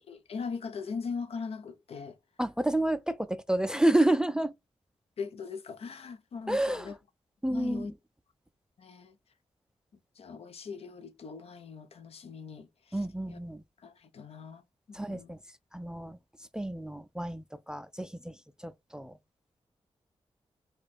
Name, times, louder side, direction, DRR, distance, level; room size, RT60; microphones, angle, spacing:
voice 1, 0.1-2.2 5.2-7.0 7.5-7.9 8.8-9.1 10.2-13.0 13.3-13.4 13.8-14.6 14.9-15.3, left 5 dB, 70° left, 0.7 m, -40 dB
voice 2, 2.4-4.5 6.5-6.9 7.4-7.9 12.9-13.6 14.9-15.4 15.7-16.2 16.5-18.4 18.6-19.2, right 1 dB, 5° right, 0.3 m, -29 dB
4.7 x 2.3 x 4.2 m
wide cardioid pair, 115°, 11 cm